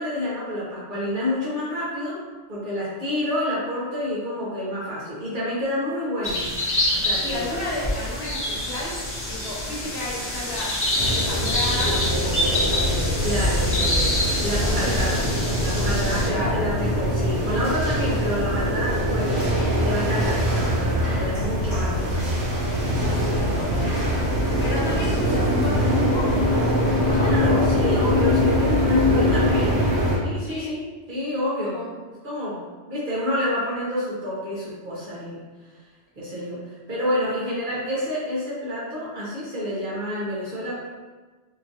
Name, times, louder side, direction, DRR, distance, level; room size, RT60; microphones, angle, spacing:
voice 1, 0.0-2.2 2.5-6.5 6.9-7.6 13.2-13.8 14.4-15.3 15.6-19.4 19.8-22.3 27.1-29.8 30.2-31.8 32.2-32.6 32.9-35.4 36.2-40.9, left 1 dB, 50° right, -7 dB, 0.9 m, -28 dB
sound 1, 6.2-16.3, left 1 dB, 15° left, 0.7 m, -26 dB
voice 2, 7.2-8.9 9.3-12.8 13.7-14.1 14.6-15.3 15.8-16.6 23.0-24.2 24.6-26.6 27.0-27.3 30.4-30.7 31.6-31.9, left 1 dB, 65° left, -6 dB, 1.1 m, -33 dB
sound 2, 11.0-30.2, left 1 dB, 70° right, 1.2 m, -23 dB
2.9 x 2.4 x 2.5 m, 1.3 s
omnidirectional pair, 1.2 m